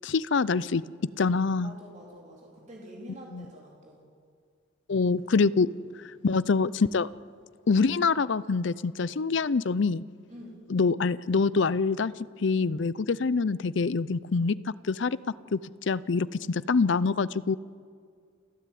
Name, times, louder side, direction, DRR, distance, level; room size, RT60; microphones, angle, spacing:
voice 1, 0.0-1.7 3.3-3.4 4.9-5.7 6.2-7.1 7.7-10.0 10.7-12.1 12.4-15.2 15.5-15.6 15.9-17.6, left 4 dB, 65° left, 19 dB, 0.5 m, -25 dB
voice 2, 1.6-4.0 10.3-10.6, equal, 35° right, -3 dB, 3.9 m, -46 dB
29.5 x 12.5 x 9.3 m, 2.2 s
head